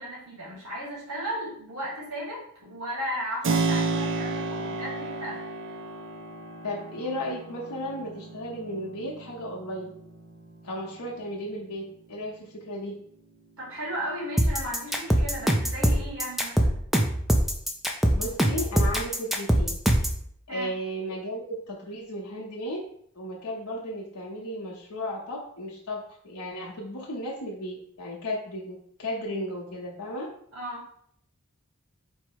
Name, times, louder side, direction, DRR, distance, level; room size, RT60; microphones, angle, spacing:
voice 1, 0.0-5.4 13.6-16.8 20.5-20.7 30.5-30.9, equal, 75° right, -4 dB, 1.7 m, -35 dB
Keyboard (musical), 3.4-12.0, right 3 dB, 60° right, 0.5 m, -33 dB
voice 2, 6.6-10.0 10.6-13.0 18.1-19.8 20.5-22.9 23.1-30.3, equal, 90° left, -3 dB, 0.8 m, -35 dB
sound 1, 14.4-20.2, equal, ahead, 0.4 m, -22 dB
4.6 x 2.0 x 4.6 m, 0.64 s
head